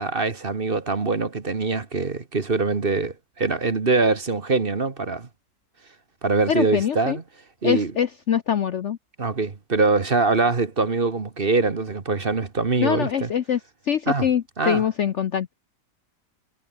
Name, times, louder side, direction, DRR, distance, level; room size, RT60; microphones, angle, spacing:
voice 1, 0.0-5.3 6.2-7.2 7.6-7.9 9.2-13.3 14.1-14.3 14.6-14.8, right 3 dB, 35° right, 1.6 m, -23 dB
voice 2, 6.5-7.2 7.6-9.0 12.8-13.6 13.9-15.5, left 8 dB, 55° left, 0.9 m, -24 dB
omnidirectional pair, 1.8 m